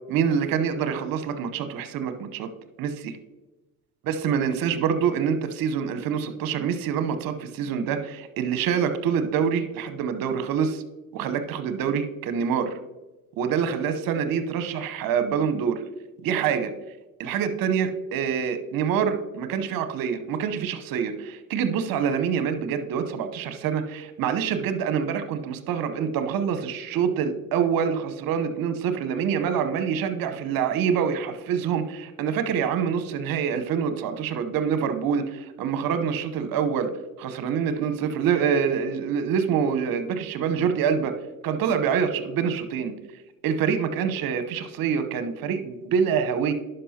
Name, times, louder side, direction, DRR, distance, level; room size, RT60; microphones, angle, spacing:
voice 1, 0.1-2.5 2.8-3.2 4.0-10.8 11.1-12.7 13.4-15.8 16.2-16.7 17.2-36.9 37.2-41.1 41.4-42.9 43.4-46.5, right 7 dB, 55° right, 10 dB, 0.9 m, -26 dB
11.0 x 5.4 x 2.8 m, 1.1 s
hypercardioid pair, 65°, 42 cm